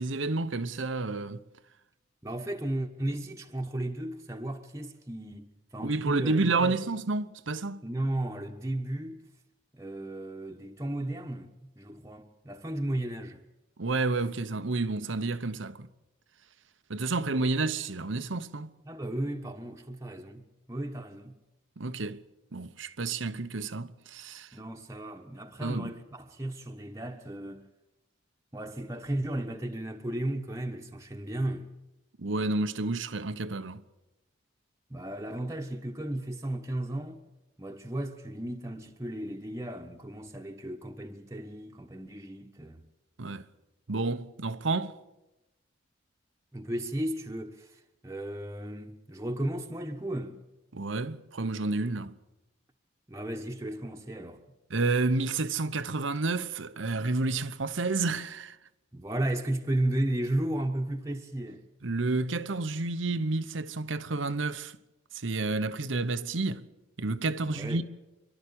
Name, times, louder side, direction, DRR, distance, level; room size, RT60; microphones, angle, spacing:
voice 1, 0.0-1.4 5.8-7.8 13.8-15.9 16.9-18.7 21.8-22.2 22.5-24.6 25.6-25.9 32.2-33.8 43.2-43.5 43.9-45.0 50.7-52.2 54.7-58.6 61.8-64.8 65.1-66.7 67.0-67.8, right 3 dB, 80° right, 1.0 m, -30 dB
voice 2, 2.2-6.7 7.8-9.2 9.7-13.4 18.8-21.3 24.5-27.6 28.5-31.7 34.9-37.2 37.6-42.8 46.5-50.3 53.1-54.4 58.9-61.6 67.4-67.8, right 1 dB, 15° right, 1.2 m, -34 dB
26.5 x 12.5 x 8.7 m
head